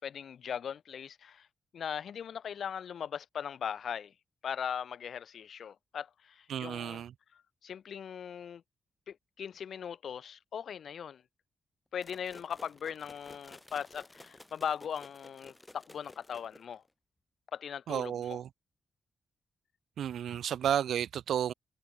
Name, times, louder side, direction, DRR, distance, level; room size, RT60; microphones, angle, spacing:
voice 1, 0.0-1.5 1.7-4.1 4.4-7.0 7.3-8.6 9.1-11.2 11.9-16.8 17.5-18.4 20.3-20.4, left 8 dB, 55° left, 4.8 m, -39 dB
voice 2, 6.5-7.1 17.9-18.5 20.0-21.5, right 9 dB, 75° right, 0.8 m, -32 dB
sound 1, 12.0-16.9, left 1 dB, 10° left, 3.7 m, -54 dB
wide cardioid pair, 155°, 0 cm